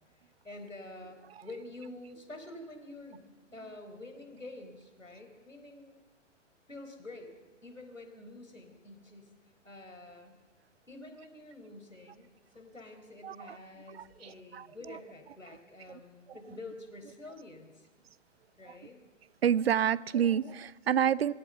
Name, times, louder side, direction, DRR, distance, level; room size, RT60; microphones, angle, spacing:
voice 1, 0.4-3.3 3.5-6.0 6.7-7.3 7.6-9.3 9.6-10.4 10.9-12.3 12.5-17.9 18.6-19.0, left 2 dB, 85° left, 4 dB, 4.4 m, -48 dB
voice 2, 13.2-13.6 13.9-15.0 15.9-16.0 18.7-18.8 19.4-21.3, right 9 dB, 55° right, 21 dB, 0.6 m, -29 dB
21.5 x 17.0 x 8.1 m, 1.2 s
figure-of-eight pair, 115°, 38 cm